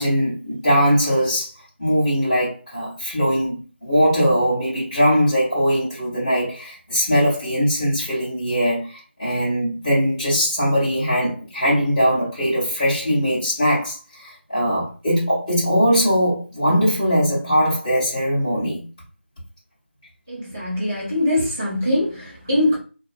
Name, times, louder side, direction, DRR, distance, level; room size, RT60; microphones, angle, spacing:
voice 1, 0.0-1.5 1.8-18.9, equal, 15° left, 0.8 m, -20 dB
voice 2, 20.3-22.8, left 1 dB, 10° right, 0.4 m, -22 dB
2.4 x 2.1 x 2.6 m
figure-of-eight pair, 175°, 7 cm